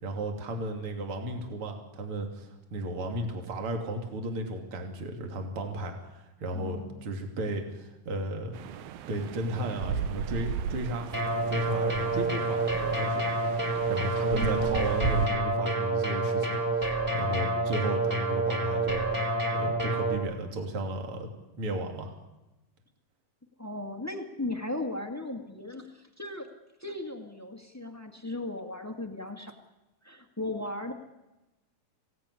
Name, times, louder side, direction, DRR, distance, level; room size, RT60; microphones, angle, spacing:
voice 1, 0.0-8.6 9.1-11.1 11.5-13.3 13.5-19.2 19.5-21.3 21.6-22.1, right 1 dB, 40° right, 3 dB, 3.4 m, -34 dB
voice 2, 6.5-7.0 11.6-11.7 14.3-14.8 23.6-26.5 26.8-29.5 30.0-30.9, left 2 dB, 25° left, 4 dB, 0.3 m, -37 dB
sound 1, 8.5-15.3, right 7 dB, 85° right, 2.8 m, -35 dB
sound 2, 11.1-20.1, right 2 dB, 15° right, 4.4 m, -28 dB
25.5 x 17.5 x 9.8 m, 1.0 s
omnidirectional pair, 4.0 m